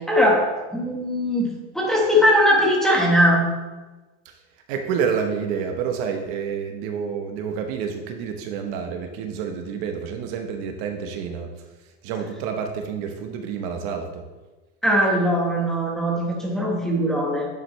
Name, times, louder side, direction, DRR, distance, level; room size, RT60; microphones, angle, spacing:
voice 1, 0.1-0.4 0.7-1.5 1.7-3.5 14.8-17.5, equal, ahead, -3 dB, 1.3 m, -20 dB
voice 2, 4.7-11.5 12.0-14.2, right 6 dB, 50° right, 4 dB, 1.0 m, -28 dB
9.8 x 7.9 x 3.2 m, 1.2 s
supercardioid pair, 170°, 37 cm